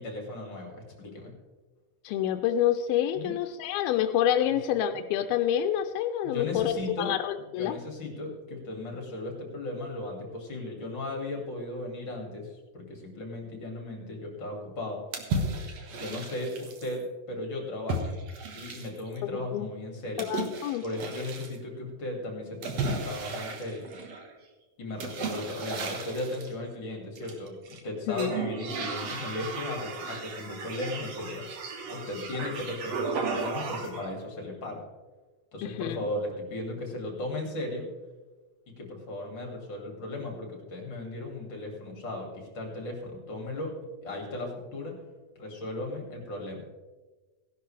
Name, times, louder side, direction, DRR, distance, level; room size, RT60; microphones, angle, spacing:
voice 1, 0.0-1.3 3.2-3.4 6.2-7.2 7.6-15.0 15.9-18.1 18.5-20.3 20.8-23.8 24.8-31.4 31.9-34.8 35.5-37.9 38.8-43.7 44.0-45.0 45.4-46.6, left 2 dB, 35° left, 1 dB, 2.5 m, -36 dB
voice 2, 2.0-7.8 19.3-19.7 20.2-20.8 28.1-28.3 35.6-36.0, left 10 dB, 90° left, 6 dB, 2.4 m, -27 dB
sound 1, 15.1-16.9 17.9-19.2 20.2-21.6 22.6-24.3 25.0-26.5 27.2-27.8 28.1-34.1, right 3 dB, 55° right, 2.0 m, -35 dB
17.0 x 11.5 x 3.3 m, 1.2 s
omnidirectional pair, 4.2 m